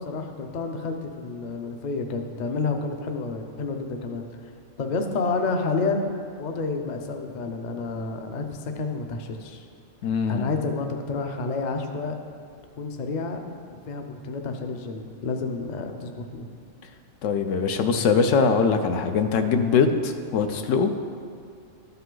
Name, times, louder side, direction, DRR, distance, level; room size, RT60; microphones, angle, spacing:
voice 1, 0.0-4.2 4.8-6.1 6.4-9.6 10.3-12.1 12.8-13.5 13.9-16.5, left 3 dB, 45° left, 5 dB, 0.6 m, -29 dB
voice 2, 10.0-10.5 17.2-20.9, left 5 dB, 80° left, 7 dB, 1.0 m, -22 dB
12.5 x 5.7 x 3.8 m, 2.3 s
omnidirectional pair, 1.3 m